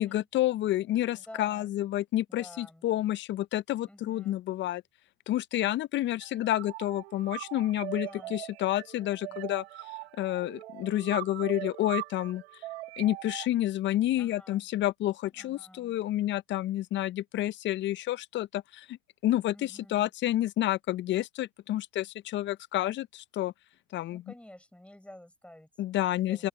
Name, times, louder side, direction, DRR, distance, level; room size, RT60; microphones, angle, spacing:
voice 1, 0.0-4.8 5.3-9.6 10.2-12.4 13.0-19.0 19.2-23.5 23.9-24.2 25.8-26.5, left 14 dB, 35° left, 0.6 m, -29 dB
voice 2, 1.1-1.8 2.3-2.9 3.8-4.4 7.9-8.4 9.2-9.6 14.1-14.7 15.4-16.0 19.5-20.1 24.1-25.7 26.0-26.5, left 1 dB, 5° left, 5.8 m, -51 dB
sound 1, 6.2-13.5, right 19 dB, 75° right, 2.1 m, -41 dB
open air
hypercardioid pair, 95°, 33 cm